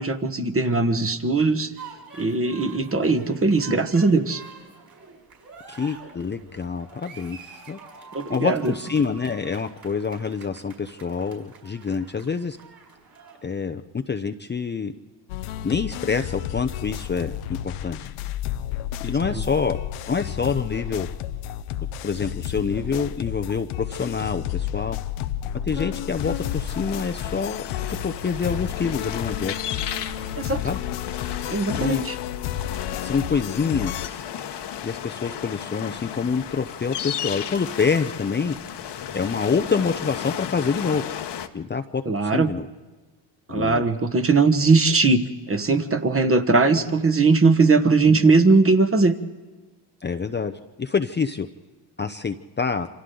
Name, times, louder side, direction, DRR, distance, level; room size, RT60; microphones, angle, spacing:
voice 1, 0.0-1.7 2.2-4.4 8.1-8.7 19.3-19.4 30.3-30.6 31.5-32.2 42.0-42.5 43.5-49.1, right 3 dB, 25° right, 9 dB, 1.3 m, -20 dB
sound 1, 1.8-13.4, right 4 dB, 45° right, 6.2 m, -46 dB
voice 2, 5.7-7.4 7.7-7.8 8.3-12.6 13.4-14.9 15.6-17.4 17.6-18.1 19.0-19.8 20.1-21.1 22.0-25.0 25.7-29.5 30.6-30.8 31.7-32.0 33.0-34.2 34.8-38.6 39.1-41.1 41.5-42.7 43.5-43.8 50.0-51.5 52.0-52.9, left 5 dB, 20° left, 6 dB, 0.7 m, -26 dB
sound 2, 15.3-34.1, left 11 dB, 85° left, 0.8 m, -31 dB
sound 3, 26.1-41.5, left 9 dB, 55° left, 1.2 m, -34 dB
27.5 x 25.5 x 3.9 m, 1.2 s
cardioid pair, 85°, 49 cm